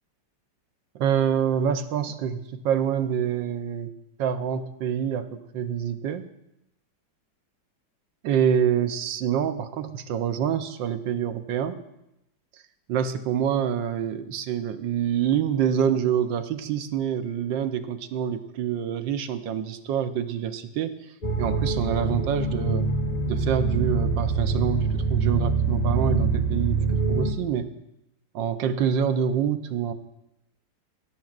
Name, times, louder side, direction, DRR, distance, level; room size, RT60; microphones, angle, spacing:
voice 1, 0.9-3.9 4.2-6.3 8.2-11.8 12.9-20.9 21.4-22.9 23.3-27.7 28.3-29.9, right 8 dB, 85° right, 10 dB, 1.5 m, -26 dB
sound 1, 21.2-27.3, right 4 dB, 25° left, 1.3 m, -24 dB
19.5 x 16.0 x 2.5 m, 0.85 s
omnidirectional pair, 1.9 m